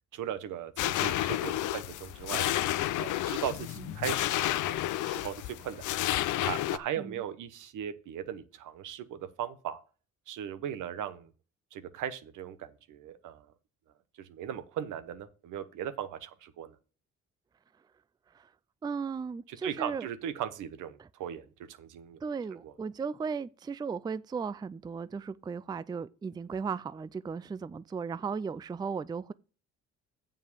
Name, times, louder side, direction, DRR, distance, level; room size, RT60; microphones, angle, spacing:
voice 1, 0.1-2.5 3.0-6.0 6.4-9.8 10.3-11.3 11.7-13.5 14.2-16.8 19.5-22.2 22.6-22.7, right 9 dB, 85° right, 1.1 m, -38 dB
sound 1, 0.8-6.8, left 14 dB, 80° left, 0.6 m, -31 dB
voice 2, 18.8-20.1 21.0-21.1 22.2-29.3, right 5 dB, 15° right, 0.3 m, -36 dB
7.5 x 5.5 x 6.7 m
cardioid pair, 90°, 30 cm